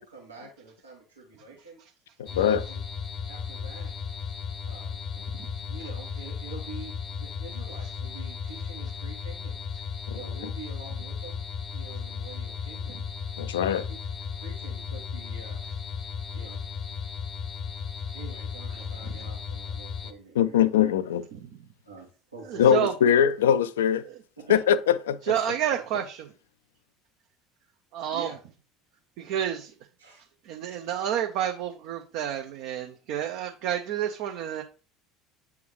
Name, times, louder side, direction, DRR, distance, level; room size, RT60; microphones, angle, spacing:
voice 1, 0.0-1.8 2.3-2.8 3.3-3.9 4.6-9.6 10.1-13.0 13.6-14.0 14.4-15.6 16.3-16.6 18.1-20.6 21.8-22.8 24.5-24.6 25.8-25.9 28.1-28.4 30.0-30.3, right 4 dB, 85° right, 1.4 m, -46 dB
sound 1, 2.3-20.1, left 6 dB, 45° left, 0.7 m, -35 dB
voice 2, 13.4-13.8 20.4-21.2 22.6-24.0 24.5-24.8 25.1-25.2, left 9 dB, 75° left, 0.3 m, -21 dB
voice 3, 25.2-26.2 27.9-28.3 29.2-29.7 30.5-34.6, right 10 dB, 60° right, 0.6 m, -29 dB
8.4 x 3.5 x 3.1 m
figure-of-eight pair, 65°, 0 cm